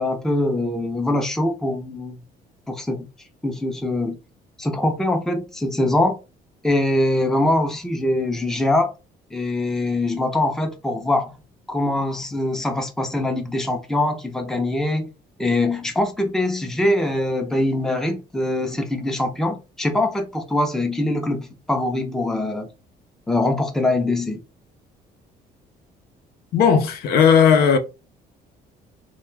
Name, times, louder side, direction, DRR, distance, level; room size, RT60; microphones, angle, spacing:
voice 1, 0.0-2.2 2.7-3.1 3.4-4.2 4.6-6.2 6.6-8.9 9.3-11.3 11.7-15.1 15.4-22.7 23.3-24.4, left 1 dB, 5° left, 0.5 m, -23 dB
voice 2, 26.5-27.8, left 7 dB, 70° left, 0.6 m, -15 dB
2.3 x 2.2 x 3.2 m
cardioid pair, 110°, 17 cm